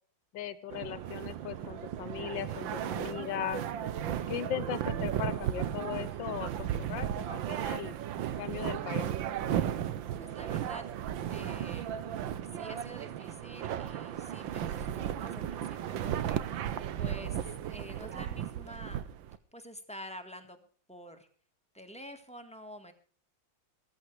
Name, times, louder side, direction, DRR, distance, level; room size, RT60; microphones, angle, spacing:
voice 1, 0.3-3.6 4.3-8.0 8.4-9.1, left 10 dB, 75° left, 15 dB, 1.6 m, -38 dB
sound 1, 0.7-19.4, right 10 dB, 90° right, 1.7 m, -35 dB
voice 2, 10.2-10.8 11.3-11.9 12.5-16.4 17.0-19.0 19.5-20.6 20.9-21.3 21.7-22.9, equal, 5° left, 7 dB, 1.8 m, -48 dB
16.5 x 14.0 x 4.8 m, 0.43 s
omnidirectional pair, 2.1 m